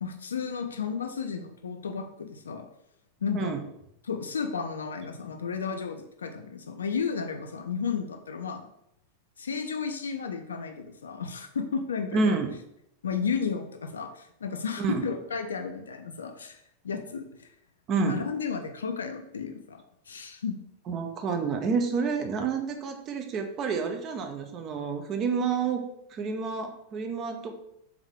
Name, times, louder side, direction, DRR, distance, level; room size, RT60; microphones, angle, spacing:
voice 1, 0.0-2.7 3.2-3.5 4.0-8.6 9.4-12.3 13.0-17.5 18.0-20.6, left 6 dB, 70° left, 5 dB, 0.4 m, -33 dB
voice 2, 12.1-12.5 14.8-15.1 17.9-18.2 20.9-25.8 26.1-27.5, right 5 dB, 30° right, 5 dB, 0.6 m, -29 dB
3.6 x 3.5 x 3.6 m, 0.79 s
figure-of-eight pair, 90°, 0 cm